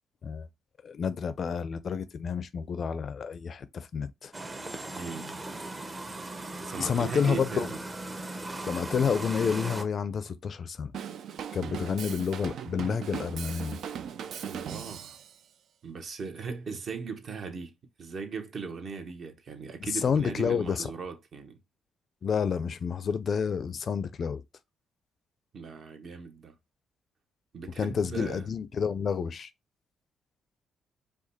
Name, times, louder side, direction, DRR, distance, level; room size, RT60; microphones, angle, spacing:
voice 1, 0.8-4.3 4.9-5.0 6.8-7.7 8.7-10.9 11.5-13.8 19.9-20.9 22.2-24.4 27.8-29.5, left 6 dB, 50° left, 0.5 m, -29 dB
sound 1, 4.3-9.8, right 2 dB, 25° right, 0.8 m, -38 dB
voice 2, 4.9-5.4 6.6-7.8 14.4-15.2 15.8-17.7 18.0-21.6 25.5-26.5 27.5-28.5, right 5 dB, 55° right, 1.2 m, -38 dB
Drum kit / Drum, 10.9-15.4, right 8 dB, 70° right, 0.5 m, -38 dB
5.0 x 2.4 x 4.2 m
cardioid pair, 90°, 0 cm